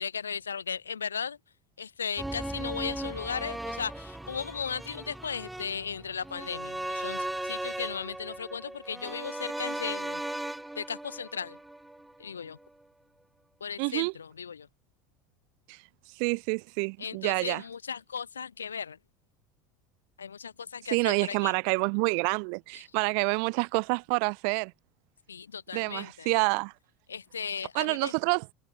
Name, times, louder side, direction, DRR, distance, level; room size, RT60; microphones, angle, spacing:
voice 1, 0.0-1.4 1.8-10.2 10.7-11.6 12.2-12.6 13.6-14.7 17.0-19.0 20.2-21.5 22.7-22.8 25.3-26.3 27.1-28.1, left 6 dB, 85° left, 6.0 m, -36 dB
sound 1, 2.2-12.3 12.6-12.7, right 1 dB, 5° right, 5.4 m, -37 dB
voice 2, 13.8-14.1 15.7-15.8 16.2-17.6 20.9-24.7 25.7-26.7 27.7-28.5, right 40 dB or more, 60° right, 0.8 m, -28 dB
hypercardioid pair, 80°, 0 cm